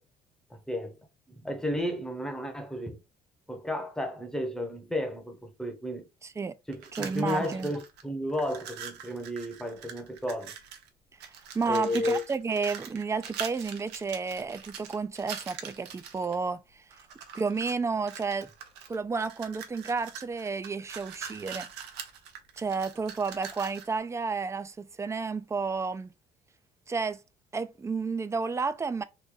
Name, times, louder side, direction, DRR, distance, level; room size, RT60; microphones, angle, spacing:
voice 1, 0.5-1.0 1.3-3.0 3.5-6.1 6.7-10.5 11.7-12.2, left 1 dB, 5° left, 0.8 m, -33 dB
voice 2, 6.2-6.6 7.0-7.7 11.2-16.8 17.3-18.5 18.9-21.7 22.6-26.1 26.9-27.2 27.5-29.0, right 4 dB, 15° right, 0.3 m, -31 dB
sound 1, 6.7-8.0 8.3-10.9 11.2-16.3 16.9-17.8 18.1-23.9, right 8 dB, 85° right, 0.7 m, -43 dB
3.0 x 2.6 x 3.7 m
cardioid pair, 110°, 17 cm